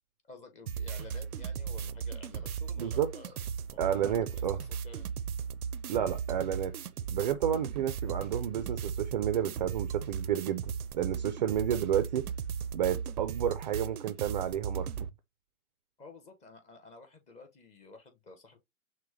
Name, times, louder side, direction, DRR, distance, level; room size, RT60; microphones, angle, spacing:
voice 1, 0.3-3.4 3.7-5.1 16.0-18.6, left 3 dB, 15° left, 0.8 m, -52 dB
sound 1, 0.7-15.1, right 7 dB, 85° right, 0.5 m, -37 dB
voice 2, 2.8-3.1 3.8-4.6 5.9-6.7 7.1-12.3 12.7-15.1, right 10 dB, 35° right, 0.4 m, -31 dB
6.1 x 2.2 x 3.2 m
figure-of-eight pair, 115°, 43 cm